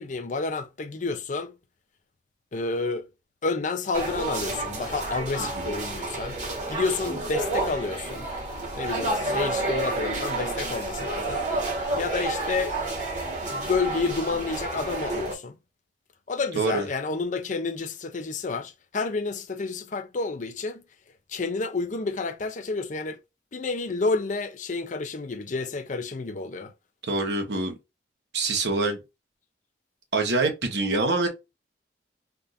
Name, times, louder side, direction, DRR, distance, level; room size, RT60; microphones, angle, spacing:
voice 1, 0.0-1.5 2.5-3.1 3.4-6.4 6.7-8.3 8.8-11.4 11.9-12.8 13.5-15.6 16.3-20.8 21.3-23.2 23.5-26.7, left 3 dB, 45° left, 0.5 m, -30 dB
sound 1, 3.9-15.3, right 2 dB, 45° right, 1.4 m, -30 dB
voice 2, 27.1-27.7 28.3-29.0 30.1-31.3, right 3 dB, 70° right, 1.2 m, -25 dB
3.6 x 2.5 x 2.5 m
head